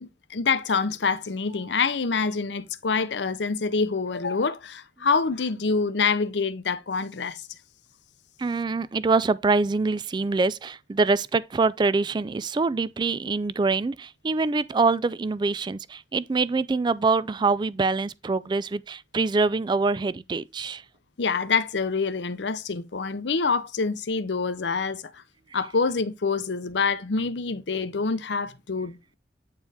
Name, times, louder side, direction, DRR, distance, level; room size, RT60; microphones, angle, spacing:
voice 1, 0.0-7.4 21.2-25.2 25.5-29.2, left 4 dB, 85° left, 0.7 m, -26 dB
voice 2, 8.4-20.8, right 3 dB, 25° right, 0.3 m, -24 dB
8.6 x 4.5 x 3.3 m
head